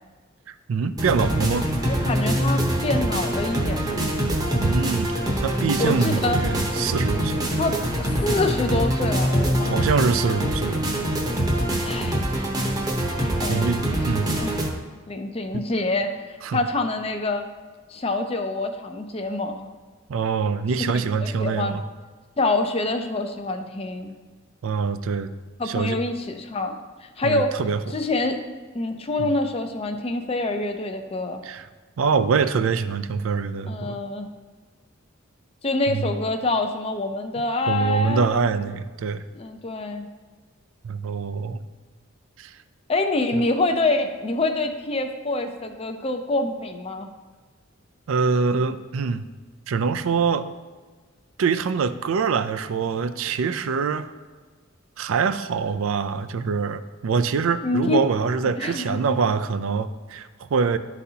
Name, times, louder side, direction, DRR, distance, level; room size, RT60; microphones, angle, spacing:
voice 1, 0.5-1.7 4.5-7.5 9.6-10.8 13.5-14.3 15.5-15.6 16.4-16.6 20.1-21.8 24.6-25.3 25.7-26.0 27.2-27.9 29.2-29.3 31.4-31.7 32.0-34.0 35.9-36.1 37.7-39.2 40.8-41.6 42.4-42.6 43.3-43.4 48.1-49.2 49.7-50.5 51.4-54.1 55.0-60.8, right 5 dB, 80° right, 12 dB, 0.4 m, -24 dB
sound 1, 1.0-14.7, right 1 dB, 20° right, 0.8 m, -24 dB
voice 2, 1.9-4.0 5.8-6.4 7.1-7.7 8.0-9.9 11.8-12.3 13.4-13.6 14.0-14.5 15.1-17.5 17.9-19.7 20.8-21.8 22.4-24.2 25.6-27.6 27.9-28.4 28.7-31.4 33.7-34.3 35.6-38.5 39.3-40.1 42.9-47.1 57.6-58.1 58.4-59.2, left 2 dB, 30° left, 6 dB, 0.5 m, -26 dB
11.0 x 4.1 x 2.8 m, 1.4 s
head